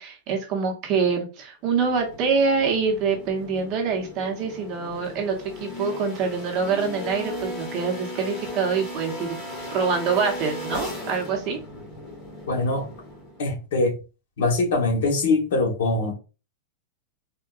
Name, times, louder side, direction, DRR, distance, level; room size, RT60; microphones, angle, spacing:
voice 1, 0.0-9.4 9.7-11.6, right 5 dB, 35° right, 0.8 m, -25 dB
sound 1, 1.6-13.5, left 1 dB, 15° left, 1.1 m, -37 dB
voice 2, 12.5-12.9 13.4-13.9 14.4-16.1, left 2 dB, 75° left, 1.0 m, -22 dB
3.6 x 2.2 x 2.4 m
supercardioid pair, 165°, 0 cm